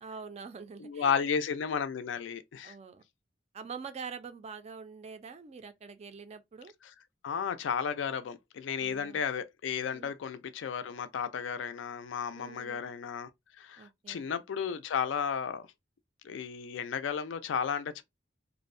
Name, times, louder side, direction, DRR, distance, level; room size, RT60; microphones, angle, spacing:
voice 1, 0.0-1.3 2.6-3.0 3.5-6.7 8.8-9.2 9.9-10.1 12.4-12.9 13.8-14.3, right 5 dB, 35° right, 0.3 m, -45 dB
voice 2, 0.8-2.7 7.2-13.3 13.6-15.7 16.2-18.0, left 7 dB, 70° left, 0.4 m, -33 dB
2.5 x 2.0 x 2.4 m
head